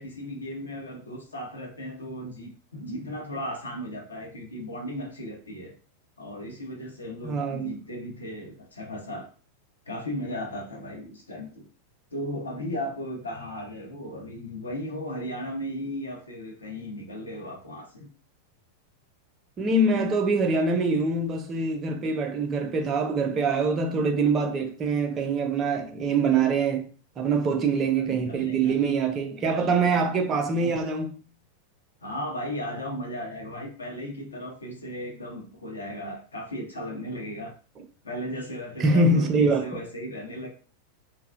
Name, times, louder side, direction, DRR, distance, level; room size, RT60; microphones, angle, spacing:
voice 1, 0.0-5.7 6.2-9.3 9.9-11.7 12.1-18.1 28.1-28.8 30.6-30.7 32.0-37.5 38.0-40.5, equal, 75° left, 0.6 m, -36 dB
voice 2, 7.2-7.8 19.6-26.9 27.2-31.3 38.8-39.8, right 3 dB, 25° right, 0.4 m, -24 dB
2.5 x 2.0 x 2.4 m
figure-of-eight pair, 90°, 0 cm